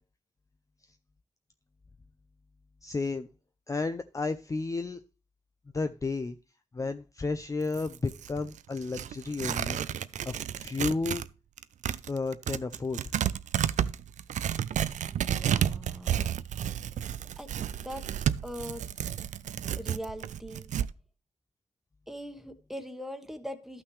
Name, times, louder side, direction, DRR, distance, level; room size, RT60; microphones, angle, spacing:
voice 1, 2.8-3.3 3.7-5.0 5.7-6.4 6.7-9.8 10.3-11.2 12.1-13.0, left 3 dB, 25° left, 0.5 m, -32 dB
Tearing, 7.6-11.3 11.6-20.9, right 9 dB, 85° right, 0.4 m, -31 dB
voice 2, 15.0-16.4 17.4-17.5 17.8-18.0 18.4-18.8 19.8-20.6 22.1-23.8, equal, 5° right, 1.3 m, -41 dB
12.5 x 5.9 x 3.2 m
cardioid pair, 65°, 12 cm